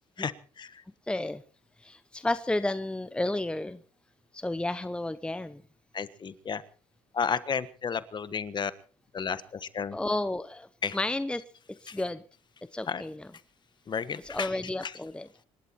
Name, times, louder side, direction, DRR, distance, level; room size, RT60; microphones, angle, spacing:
voice 1, 0.2-0.8 5.9-6.6 7.1-8.7 9.1-10.0 10.8-11.0 11.9-12.0 12.9-13.0 13.9-15.0, left 6 dB, 40° left, 14 dB, 1.4 m, -33 dB
voice 2, 1.1-1.4 1.8-3.8 4.3-5.6 9.9-10.7 10.9-11.4 11.8-12.2 12.7-13.3 14.2-15.3, left 2 dB, 10° left, 13 dB, 1.0 m, -31 dB
26.5 x 12.0 x 4.4 m, 0.39 s
cardioid pair, 85°, 12 cm